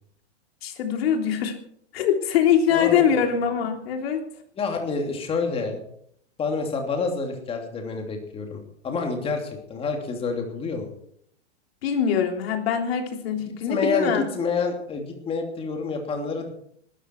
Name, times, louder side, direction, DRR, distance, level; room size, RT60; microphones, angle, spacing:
voice 1, 0.6-1.5 1.9-4.2 11.8-14.3, left 8 dB, 60° left, 4 dB, 3.4 m, -23 dB
voice 2, 2.7-3.2 4.6-5.8 6.4-10.9 13.7-16.5, left 4 dB, 15° left, 3 dB, 3.0 m, -28 dB
19.5 x 13.0 x 4.6 m, 0.68 s
hypercardioid pair, 150°, 35 cm